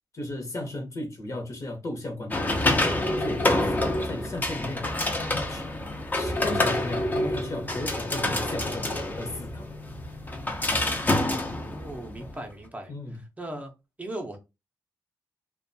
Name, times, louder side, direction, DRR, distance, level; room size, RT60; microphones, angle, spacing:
voice 1, 0.1-2.6 2.9-4.9 5.5-5.7 6.1-9.7 12.9-13.2, left 1 dB, 45° left, 0.9 m, -35 dB
sound 1, 2.3-12.3, left 1 dB, 25° left, 0.6 m, -27 dB
voice 2, 11.6-12.9 13.4-13.7 14.0-14.4, right 1 dB, 20° right, 0.6 m, -37 dB
2.5 x 2.2 x 2.6 m
cardioid pair, 90°, 7 cm